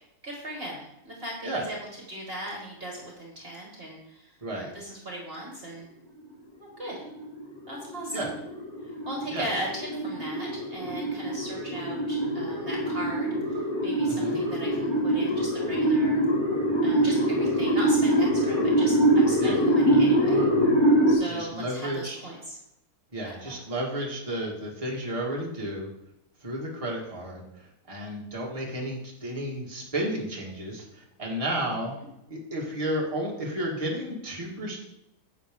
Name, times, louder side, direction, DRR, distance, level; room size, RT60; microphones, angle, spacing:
voice 1, 0.2-1.8 2.1-5.9 6.6-7.1 7.7-8.3 9.1-16.2 16.8-20.5 21.1-22.6 23.2-23.5 31.8-32.1, right 1 dB, 40° right, -2 dB, 2.0 m, -38 dB
sound 1, 6.8-21.1, right 1 dB, 15° left, 2.5 m, -24 dB
voice 2, 14.1-14.4 19.4-19.6 21.2-22.2 23.1-25.9 26.4-27.4 27.9-31.9 32.3-34.8, right 1 dB, 20° right, -3 dB, 1.9 m, -32 dB
10.0 x 7.8 x 3.6 m, 0.84 s
omnidirectional pair, 1.6 m